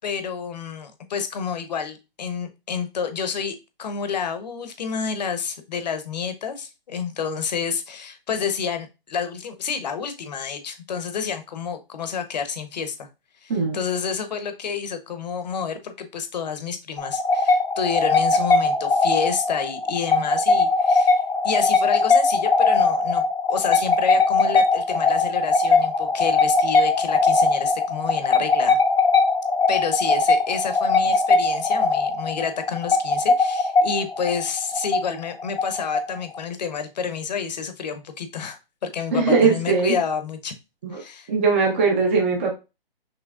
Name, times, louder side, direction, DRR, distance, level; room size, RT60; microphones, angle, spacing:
voice 1, 0.0-13.1 13.4-23.2 23.5-28.8 29.7-40.5 40.9-41.3, left 6 dB, 45° left, 8 dB, 0.8 m, -29 dB
sound 1, 17.0-36.4, left 3 dB, 85° left, 1.3 m, -20 dB
voice 2, 39.1-39.9 40.8-41.0 41.3-42.5, right 4 dB, 15° right, 0 dB, 0.5 m, -20 dB
6.2 x 3.2 x 2.4 m, 0.27 s
hypercardioid pair, 160°, 29 cm